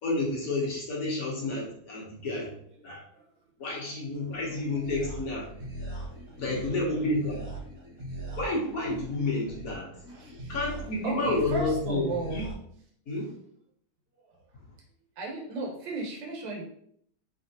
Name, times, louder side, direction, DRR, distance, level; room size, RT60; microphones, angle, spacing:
voice 1, 0.0-2.5 2.8-3.0 3.6-5.5 6.4-7.5 8.4-9.9 10.5-12.5 13.1-13.3, left 2 dB, 55° left, -3 dB, 1.2 m, -30 dB
sound 1, 4.3-12.5, right 1 dB, 45° right, 1.3 m, -41 dB
voice 2, 6.2-7.1 10.1-10.6 11.0-12.4 14.3-14.4 15.2-16.6, right 3 dB, 65° right, -1 dB, 1.6 m, -36 dB
4.7 x 3.4 x 2.7 m, 0.67 s
omnidirectional pair, 2.3 m